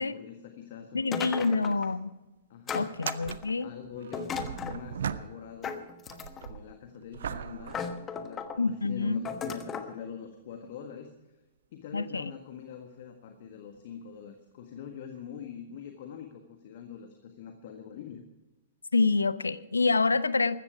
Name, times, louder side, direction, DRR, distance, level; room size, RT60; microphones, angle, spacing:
voice 1, 0.0-1.8 2.5-2.9 3.6-7.8 8.1-11.1 11.7-18.2, left 7 dB, 50° left, 6 dB, 1.5 m, -44 dB
voice 2, 0.9-2.1 2.7-3.7 8.6-9.2 11.9-12.3 18.9-20.6, left 3 dB, 80° left, 17 dB, 0.6 m, -27 dB
sound 1, 1.1-1.9 2.7-3.6 4.1-4.8 5.6-6.6 7.2-7.3 7.7-8.6 9.3-9.9, left 6 dB, 20° left, 1.2 m, -36 dB
sound 2, 1.6-1.7 2.0-2.1 2.9-5.7 6.1-8.7 9.4-9.5 13.7-13.8 15.2-15.3, right 8 dB, 60° right, 0.6 m, -39 dB
15.0 x 13.5 x 4.9 m, 1.1 s
figure-of-eight pair, 105°, 0 cm